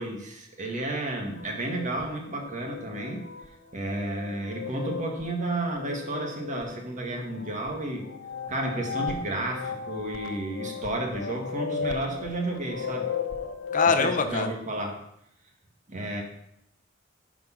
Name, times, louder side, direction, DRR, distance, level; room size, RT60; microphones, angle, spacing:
voice 1, 0.0-3.2 3.7-8.1 8.5-13.1 14.0-15.0 15.9-16.2, right 1 dB, 40° right, 2 dB, 1.9 m, -32 dB
sound 1, 1.3-14.3, left 7 dB, 75° left, 1.0 m, -36 dB
voice 2, 13.7-14.5, left 4 dB, 40° left, 8 dB, 0.7 m, -23 dB
10.5 x 5.1 x 5.9 m, 0.78 s
head